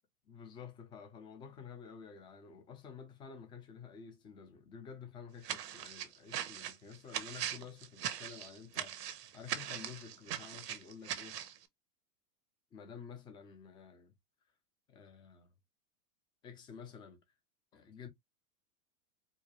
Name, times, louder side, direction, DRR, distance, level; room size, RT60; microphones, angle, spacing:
voice 1, 0.3-11.4 12.7-14.1 14.9-15.5 16.4-17.2 17.7-18.1, left 6 dB, 10° left, 0.4 m, -51 dB
sound 1, 5.4-11.6, right 10 dB, 85° right, 1.0 m, -40 dB
4.6 x 2.1 x 2.9 m
hypercardioid pair, 135°, 47 cm